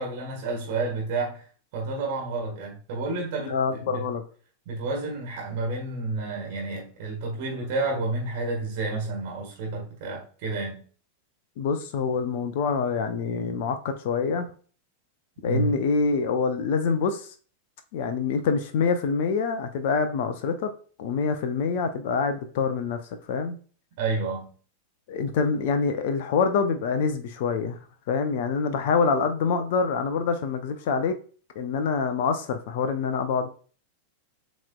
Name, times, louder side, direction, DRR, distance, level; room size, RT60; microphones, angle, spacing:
voice 1, 0.0-1.4 1.7-4.1 4.7-10.8 15.4-15.7 24.0-24.5, right 3 dB, 50° right, 0 dB, 1.3 m, -30 dB
voice 2, 3.5-4.2 11.6-14.5 15.4-17.3 17.9-20.7 21.0-23.0 23.3-23.5 25.1-27.8 28.1-31.2 31.6-33.5, left 5 dB, 50° left, 8 dB, 0.5 m, -25 dB
7.2 x 3.1 x 2.3 m, 0.41 s
figure-of-eight pair, 90°, 0 cm